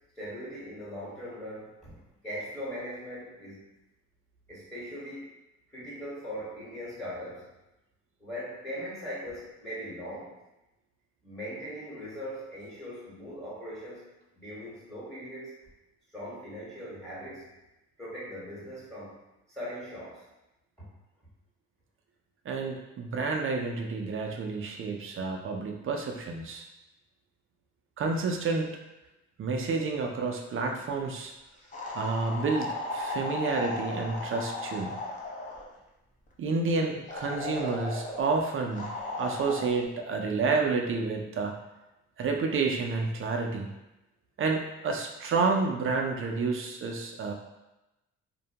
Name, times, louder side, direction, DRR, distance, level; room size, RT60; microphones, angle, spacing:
voice 1, 0.2-3.6 4.5-5.3 5.7-7.5 8.2-10.4 11.2-14.1 14.3-15.5 16.1-17.5 18.0-19.2 19.5-20.3 20.8-20.9 30.9-31.0, equal, ahead, -7 dB, 1.1 m, -40 dB
voice 2, 22.5-26.6 28.0-28.7 29.4-31.3 31.9-35.0 36.4-38.9 39.2-41.6 42.2-43.7 44.4-47.3, right 4 dB, 45° right, 2 dB, 0.4 m, -29 dB
sound 1, 31.7-35.7 37.1-38.2 38.8-39.7, left 2 dB, 25° left, 0.6 m, -35 dB
2.6 x 2.1 x 2.8 m, 0.96 s
cardioid pair, 90°, 30 cm